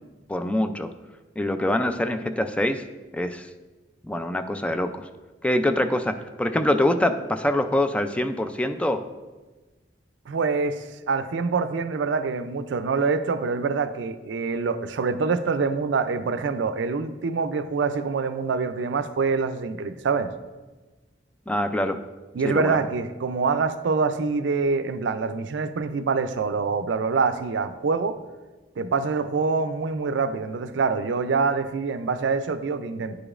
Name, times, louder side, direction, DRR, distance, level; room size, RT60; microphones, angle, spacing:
voice 1, 0.3-0.9 1.4-2.8 3.1-3.5 4.0-5.1 5.4-9.0 21.5-22.0 22.4-22.8, left 1 dB, 5° left, 8 dB, 0.3 m, -24 dB
voice 2, 10.3-20.3 22.3-28.2 28.8-33.2, right 4 dB, 75° right, 10 dB, 0.4 m, -25 dB
10.5 x 5.0 x 2.4 m, 1.2 s
head